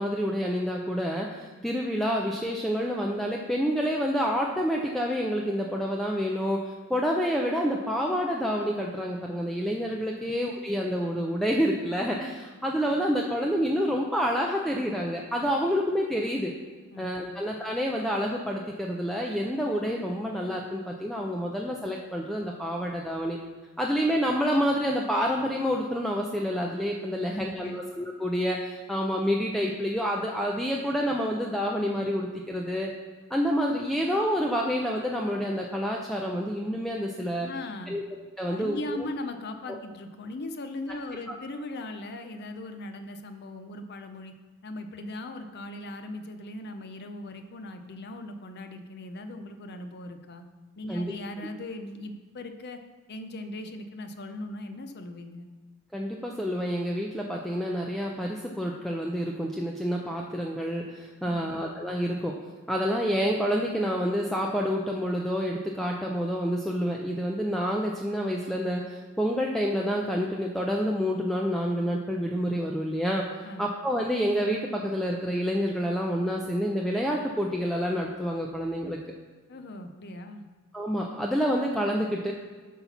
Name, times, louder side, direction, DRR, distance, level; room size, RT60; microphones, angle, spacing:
voice 1, 0.0-16.5 17.0-23.4 23.8-32.9 33.3-37.5 37.9-38.0 38.4-39.1 41.3-41.4 50.9-51.1 55.9-62.4 62.7-73.2 73.6-79.0 80.7-82.3, equal, ahead, -1 dB, 0.4 m, -28 dB
voice 2, 16.9-17.4 27.2-27.8 37.4-38.0 38.5-44.3 44.6-50.4 50.8-52.8 53.1-55.5 61.2-61.6 73.4-73.7 79.5-80.4, left 2 dB, 50° left, 7 dB, 0.6 m, -39 dB
8.2 x 4.1 x 5.8 m, 1.5 s
head